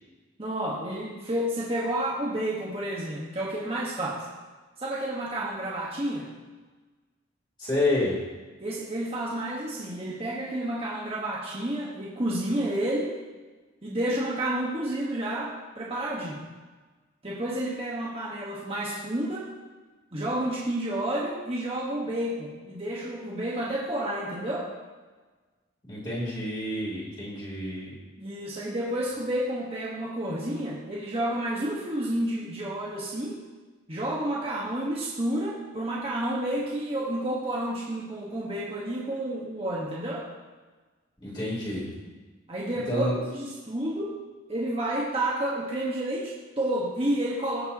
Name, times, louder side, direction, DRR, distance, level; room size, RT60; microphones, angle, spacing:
voice 1, 0.4-4.3 4.8-6.3 8.6-13.1 13.8-16.4 17.2-19.5 20.1-24.7 28.2-33.4 33.9-40.2 42.5-44.2 44.5-47.7, right 1 dB, 30° right, -5 dB, 1.4 m, -30 dB
voice 2, 7.6-8.2 25.9-27.9 41.2-41.9 42.9-43.1, left 1 dB, 20° left, -7 dB, 3.5 m, -29 dB
17.0 x 6.8 x 2.9 m, 1.3 s
head